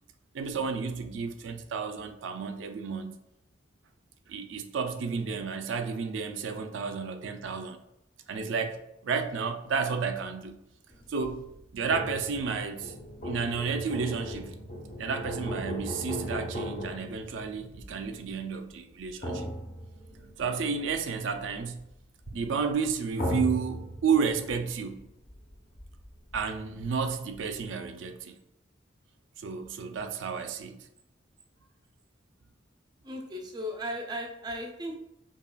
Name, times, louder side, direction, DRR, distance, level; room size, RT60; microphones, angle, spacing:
voice 1, 0.3-3.2 4.3-7.8 8.3-8.8 9.0-10.6 11.1-11.4 11.7-12.9 13.2-14.5 15.0-19.5 20.4-21.8 22.3-25.0 26.3-28.4 29.4-30.8, right 5 dB, 85° right, 0.4 m, -31 dB
sound 1, 10.9-27.7, equal, 45° left, 0.9 m, -38 dB
voice 2, 33.0-35.0, equal, 20° right, 0.5 m, -36 dB
5.5 x 2.4 x 2.2 m
head